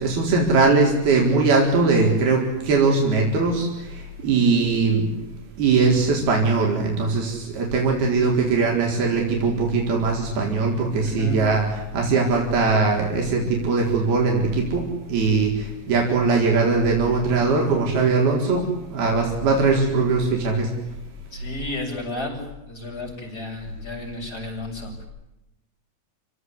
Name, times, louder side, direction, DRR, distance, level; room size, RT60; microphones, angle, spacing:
voice 1, 0.0-5.1 5.6-11.7 11.9-14.8 15.1-18.6 18.9-20.7, right 4 dB, 85° right, 0 dB, 6.3 m, -20 dB
voice 2, 11.0-11.4 21.3-22.3 22.7-25.1, left 1 dB, 25° left, 0 dB, 8.3 m, -32 dB
30.0 x 18.0 x 9.8 m, 0.93 s
omnidirectional pair, 4.3 m